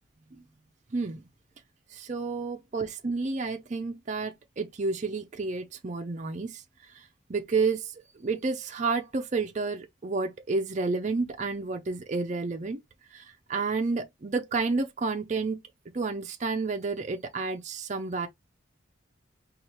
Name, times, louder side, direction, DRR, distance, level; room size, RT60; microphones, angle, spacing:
voice 1, 0.9-1.2 1.9-12.8 13.1-15.6 15.9-18.3, right 4 dB, 35° right, 0.5 m, -30 dB
4.3 x 2.4 x 3.1 m
head